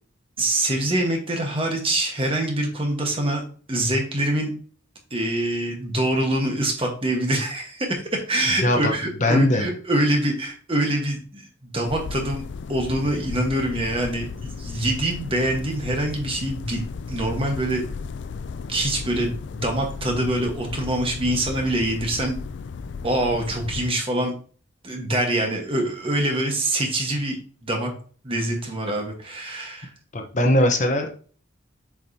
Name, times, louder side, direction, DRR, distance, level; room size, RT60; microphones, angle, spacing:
voice 1, 0.4-3.4 3.7-4.5 5.1-17.8 18.7-22.4 23.0-24.3 24.8-27.9 28.2-29.9, right 1 dB, 30° right, 2 dB, 1.3 m, -25 dB
voice 2, 8.6-8.9 9.2-9.7 30.1-31.1, left 1 dB, 40° left, 3 dB, 0.9 m, -20 dB
sound 1, 11.9-23.9, left 5 dB, 65° left, 0.4 m, -35 dB
7.0 x 4.9 x 2.8 m, 0.41 s
head